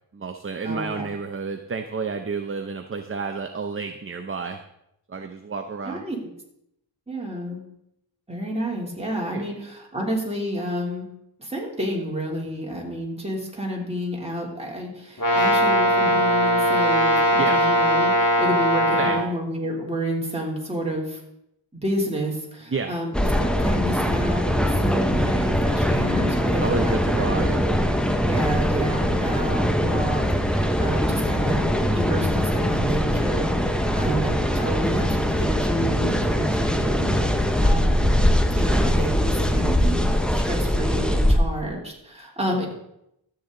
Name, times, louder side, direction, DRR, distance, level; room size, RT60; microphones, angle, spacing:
voice 1, 0.1-4.6 5.1-6.0 9.3-9.4 17.4-17.6 19.0-19.2 22.7-22.9 26.6-27.6, right 4 dB, 30° right, 6 dB, 0.7 m, -30 dB
voice 2, 0.6-1.1 5.8-6.3 7.1-7.6 8.3-11.0 11.4-21.2 21.7-27.5 28.1-31.6 31.9-38.2 38.5-42.7, equal, 15° right, -3 dB, 3.1 m, -30 dB
Brass instrument, 15.2-19.2, right 1 dB, 45° left, 3.7 m, -20 dB
sound 1, 23.1-41.4, equal, ahead, 0.8 m, -22 dB
13.0 x 8.3 x 3.9 m, 0.80 s
wide cardioid pair, 90°, 45 cm